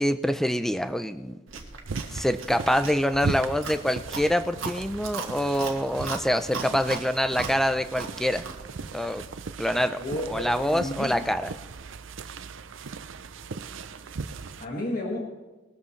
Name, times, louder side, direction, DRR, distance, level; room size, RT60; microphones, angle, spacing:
voice 1, 0.0-1.4 2.1-8.5 8.9-9.2 9.6-10.0 10.3-11.5, equal, ahead, 9 dB, 0.5 m, -25 dB
Chewing mastication, 1.5-8.7, right 4 dB, 90° right, 1.6 m, -38 dB
sound 1, 1.9-14.7, right 4 dB, 75° right, 0.6 m, -38 dB
voice 2, 10.0-11.3 14.6-15.2, left 1 dB, 45° left, -2 dB, 1.8 m, -32 dB
20.5 x 13.0 x 3.2 m, 1.2 s
head